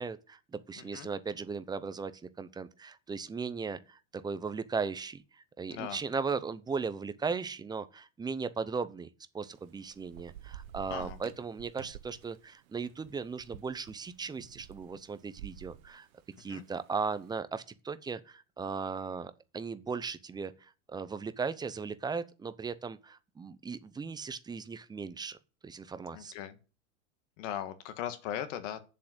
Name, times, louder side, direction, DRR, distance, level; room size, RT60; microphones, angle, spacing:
voice 1, 0.0-2.1 2.4-9.1 9.3-16.1 16.4-25.4 25.6-26.3, right 5 dB, 10° right, 0.6 m, -37 dB
voice 2, 0.8-1.1 5.7-6.0 10.9-11.2 16.5-16.6 26.1-26.6 27.4-28.8, left 10 dB, 60° left, 1.8 m, -38 dB
Thunder / Rain, 9.4-17.1, right 11 dB, 80° right, 1.2 m, -50 dB
7.6 x 7.3 x 8.0 m
supercardioid pair, 130°, 41 cm